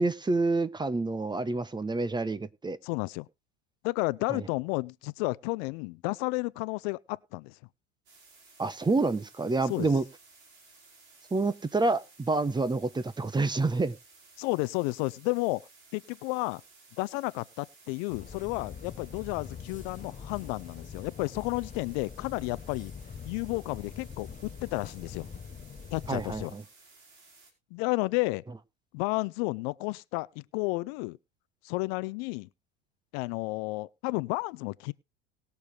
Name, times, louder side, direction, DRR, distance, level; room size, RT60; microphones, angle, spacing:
voice 1, 0.0-2.8 4.3-4.4 8.6-10.0 11.3-13.9 26.1-26.6, right 3 dB, 15° right, 0.9 m, -28 dB
voice 2, 2.8-3.3 3.8-7.6 9.6-9.9 14.4-15.6 15.9-16.6 17.0-22.9 23.2-25.3 25.9-26.5 27.7-28.4 28.9-31.2 31.6-32.5 33.1-34.9, left 24 dB, 60° left, 0.6 m, -32 dB
sound 1, 8.1-27.5, right 3 dB, 70° right, 5.0 m, -57 dB
sound 2, 18.1-26.4, left 6 dB, 25° left, 0.9 m, -44 dB
19.5 x 6.9 x 3.3 m
hypercardioid pair, 90°, 34 cm